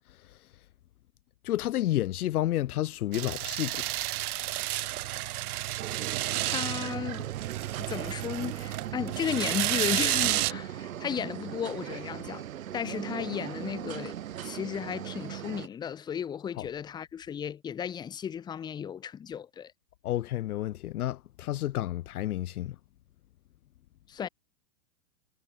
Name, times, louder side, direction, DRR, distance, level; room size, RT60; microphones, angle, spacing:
voice 1, 1.4-3.9 16.6-16.7 20.0-22.8, left 14 dB, 80° left, 0.8 m, -30 dB
sound 1, 3.1-10.5, right 16 dB, 80° right, 0.5 m, -31 dB
sound 2, 5.8-15.7, right 11 dB, 65° right, 3.9 m, -39 dB
voice 2, 6.4-7.3 7.9-12.4 12.7-14.2 14.4-19.7 24.1-24.3, left 8 dB, 10° left, 2.0 m, -34 dB
supercardioid pair, 175°, 44 cm